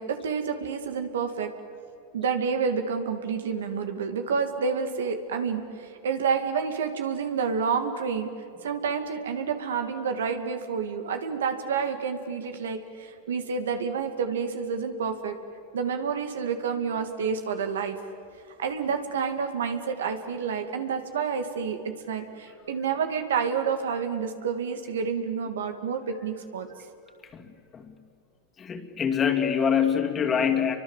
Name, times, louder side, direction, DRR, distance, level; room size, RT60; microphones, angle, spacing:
voice 1, 0.0-1.5 2.1-8.3 8.6-15.4 15.7-18.0 18.6-21.8 22.1-26.7, right 6 dB, 85° right, 6 dB, 2.5 m, -29 dB
voice 2, 28.6-30.8, left 7 dB, 25° left, 6 dB, 2.6 m, -25 dB
29.0 x 24.0 x 7.5 m, 2.6 s
hypercardioid pair, 115°, 0 cm